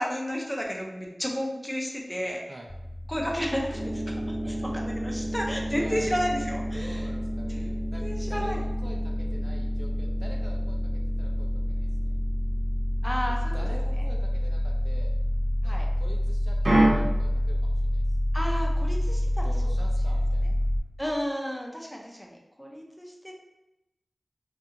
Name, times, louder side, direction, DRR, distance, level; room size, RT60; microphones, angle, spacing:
voice 1, 0.0-2.4 3.1-4.1 4.7-7.0 7.6-7.7 8.0-8.6 13.0-13.5 15.6-15.8 18.3-19.5 21.0-23.3, equal, 10° left, -1 dB, 0.5 m, -32 dB
sound 1, 2.7-20.8, left 1 dB, 85° left, 0.6 m, -28 dB
sound 2, 3.7-15.2 16.6-16.9, right 1 dB, 75° right, 0.7 m, -33 dB
voice 2, 4.4-4.7 5.2-6.5 6.7-12.1 13.3-15.1 15.6-18.0 19.4-20.6, right 1 dB, 50° right, -1 dB, 0.4 m, -45 dB
2.5 x 2.3 x 2.7 m, 0.95 s
wide cardioid pair, 55°, 0 cm